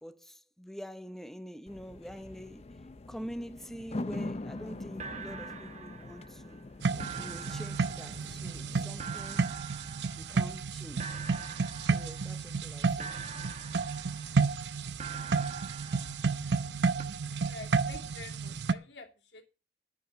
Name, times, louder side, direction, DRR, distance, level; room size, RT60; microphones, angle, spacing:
voice 1, 0.0-2.6 3.1-6.6 7.2-9.4 10.1-11.2 11.8-13.1, equal, ahead, 0.8 m, -45 dB
sound 1, 1.7-9.1, left 2 dB, 35° left, 0.6 m, -42 dB
sound 2, 4.6-4.7 5.0-6.6 7.0-10.7 11.0-12.6 13.0-14.6 15.0-16.7 17.0-17.1, right 6 dB, 40° right, 1.1 m, -45 dB
sound 3, 6.8-18.7, right 4 dB, 75° right, 0.7 m, -31 dB
voice 2, 17.4-19.4, left 3 dB, 75° left, 2.8 m, -48 dB
11.0 x 8.3 x 6.2 m
head